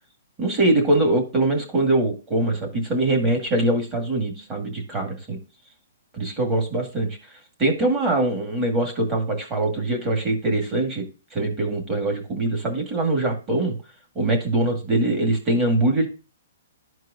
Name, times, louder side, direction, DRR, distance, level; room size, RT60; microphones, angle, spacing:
voice 1, 0.4-5.4 6.1-7.3 7.6-11.1 11.3-13.8 14.2-16.1, right 2 dB, 15° right, 2 dB, 2.0 m, -23 dB
12.5 x 4.6 x 2.6 m, 0.33 s
hypercardioid pair, 170°, 0 cm